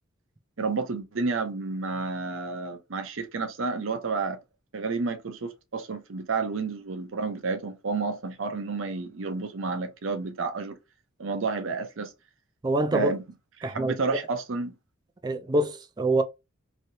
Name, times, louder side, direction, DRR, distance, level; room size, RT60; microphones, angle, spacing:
voice 1, 0.6-4.4 4.7-10.8 11.2-12.1 12.9-13.2 13.6-14.7, right 4 dB, 75° right, 0.7 m, -30 dB
voice 2, 12.6-13.1 13.6-13.9 15.2-16.2, right 2 dB, 20° right, 0.3 m, -25 dB
3.1 x 2.8 x 2.7 m
head